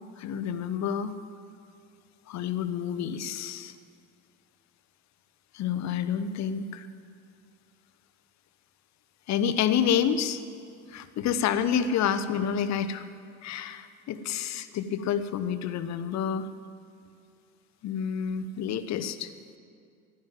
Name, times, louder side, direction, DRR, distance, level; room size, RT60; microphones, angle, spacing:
voice 1, 0.2-1.2 2.3-3.7 5.5-6.9 9.3-10.4 10.9-13.0 13.4-16.5 17.8-19.3, left 8 dB, 40° left, 12 dB, 1.0 m, -28 dB
12.5 x 10.5 x 9.2 m, 2.3 s
hypercardioid pair, 70°, 40 cm